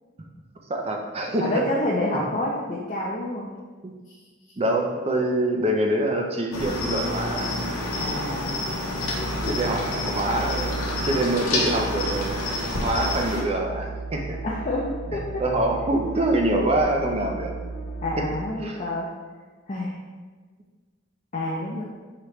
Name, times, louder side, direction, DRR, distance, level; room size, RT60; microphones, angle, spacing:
voice 1, 0.7-1.6 3.8-3.9 4.6-7.5 9.4-10.8 11.0-12.4 12.8-14.4 15.4-17.5 18.2-18.3 18.6-18.8, right 1 dB, 30° right, 1 dB, 0.5 m, -25 dB
voice 2, 1.4-3.5 8.0-8.5 9.2-9.5 14.4-15.4 18.0-19.1 19.7-20.0 21.3-21.8, left 1 dB, 35° left, -4 dB, 0.5 m, -28 dB
Cricket, 6.5-13.4, left 1 dB, 85° left, 0.8 m, -28 dB
sound 1, 8.8-18.5, right 3 dB, 70° left, 1.1 m, -35 dB
5.0 x 2.9 x 3.1 m, 1.4 s
head